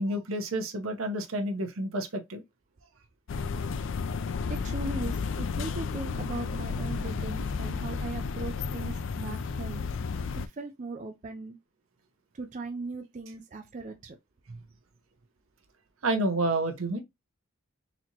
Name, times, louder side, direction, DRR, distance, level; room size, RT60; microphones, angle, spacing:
voice 1, 0.0-2.4 14.5-14.6 16.0-17.0, right 1 dB, 70° right, 0.9 m, -29 dB
sound 1, 3.3-10.5, left 5 dB, 60° left, 0.4 m, -32 dB
voice 2, 4.5-9.8 10.5-11.6 12.3-14.2, right 3 dB, 35° right, 0.4 m, -39 dB
4.1 x 2.9 x 2.9 m
head